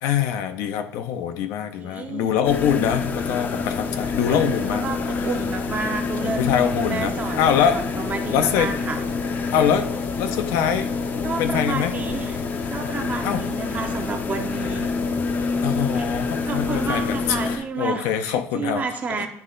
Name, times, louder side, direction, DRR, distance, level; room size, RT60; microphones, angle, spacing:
voice 1, 0.0-4.9 6.2-7.8 8.3-8.7 9.5-9.9 10.2-10.9 11.4-11.9 13.2-13.5 15.6-18.8, left 9 dB, 80° left, 8 dB, 0.6 m, -24 dB
voice 2, 1.8-2.4 4.1-9.0 11.2-12.4 12.7-14.9 15.9-16.0 16.4-19.3, right 5 dB, 30° right, 6 dB, 0.7 m, -31 dB
sound 1, 2.4-17.6, left 4 dB, 35° left, 0.6 m, -27 dB
9.5 x 3.2 x 3.8 m, 0.69 s
cardioid pair, 135°, 5 cm